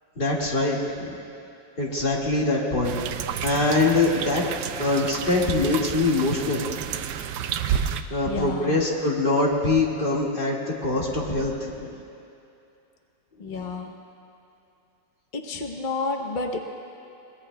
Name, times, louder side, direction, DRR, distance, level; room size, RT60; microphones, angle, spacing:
voice 1, 0.2-1.2 1.8-3.0 3.4-4.5 4.8-6.9 8.1-12.0 13.4-13.7, left 2 dB, 30° left, -3 dB, 1.8 m, -24 dB
sound 1, 2.8-8.0, right 9 dB, 75° right, 1.0 m, -30 dB
voice 2, 8.2-8.8 13.4-13.9 15.3-16.6, left 3 dB, 80° left, 3 dB, 0.4 m, -30 dB
22.5 x 19.0 x 2.2 m, 2.7 s
omnidirectional pair, 2.1 m